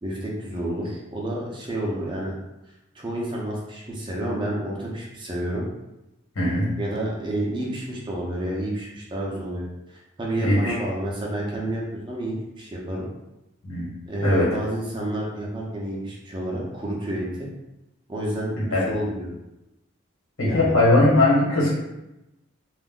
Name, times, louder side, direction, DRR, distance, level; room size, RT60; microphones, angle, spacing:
voice 1, 0.0-2.3 2.9-5.6 6.8-13.0 14.1-17.5 18.1-19.3 20.4-20.8, right 1 dB, 20° right, -3 dB, 0.5 m, -30 dB
voice 2, 6.3-6.7 10.4-10.7 13.6-13.9 14.2-14.5 18.6-18.8 20.4-21.7, left 1 dB, 85° left, -6 dB, 1.1 m, -19 dB
2.4 x 2.1 x 3.6 m, 0.94 s
head